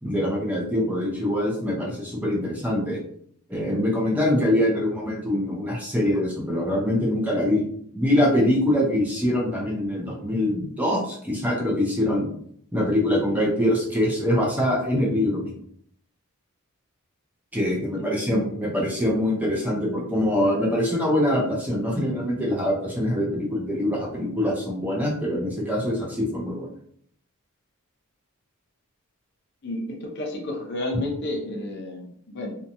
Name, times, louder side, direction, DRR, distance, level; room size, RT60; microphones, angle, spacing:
voice 1, 0.0-3.0 3.5-7.7 7.9-12.3 12.7-15.5 17.5-26.7, left 1 dB, 5° right, -2 dB, 0.5 m, -24 dB
voice 2, 18.0-18.6 29.6-32.6, left 1 dB, 50° left, 1 dB, 0.5 m, -32 dB
2.7 x 2.2 x 2.6 m, 0.64 s
head